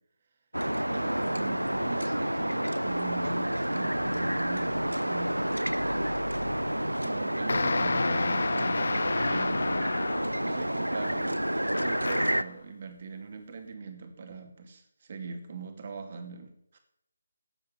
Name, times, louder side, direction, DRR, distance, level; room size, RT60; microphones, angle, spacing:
sound 1, 0.5-12.4, right 1 dB, 90° right, 0.6 m, -29 dB
voice 1, 0.9-5.7 7.0-9.7 10.4-11.5 11.8-16.8, right 4 dB, 40° right, 6 dB, 2.4 m, -41 dB
sound 2, 7.5-10.5 11.7-12.5, left 3 dB, 60° left, 0.4 m, -30 dB
16.5 x 7.2 x 7.0 m, 0.72 s
figure-of-eight pair, 150°, 0 cm